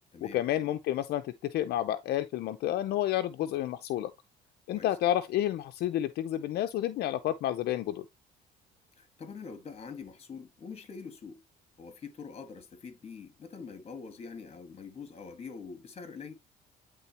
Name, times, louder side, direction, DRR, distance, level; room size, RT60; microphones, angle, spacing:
voice 1, 0.2-4.1 4.7-8.0, left 12 dB, 70° left, 0.6 m, -30 dB
voice 2, 9.0-11.4 11.8-16.3, left 5 dB, 35° left, 1.8 m, -44 dB
9.7 x 3.8 x 2.9 m
cardioid pair, 110°, 17 cm